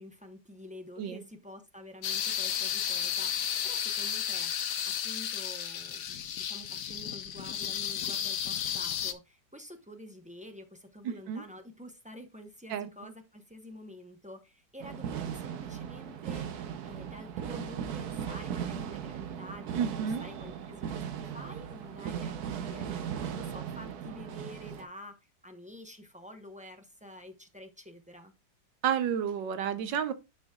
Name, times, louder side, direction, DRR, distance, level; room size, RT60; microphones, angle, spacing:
voice 1, 0.0-4.7 5.0-28.3, left 1 dB, 5° right, 0.6 m, -48 dB
sound 1, 2.0-9.1, left 9 dB, 70° left, 1.4 m, -33 dB
sound 2, 14.8-24.9, right 8 dB, 65° right, 1.2 m, -38 dB
voice 2, 19.8-20.2 28.8-30.1, right 8 dB, 85° right, 1.5 m, -30 dB
10.5 x 5.1 x 2.4 m
omnidirectional pair, 1.9 m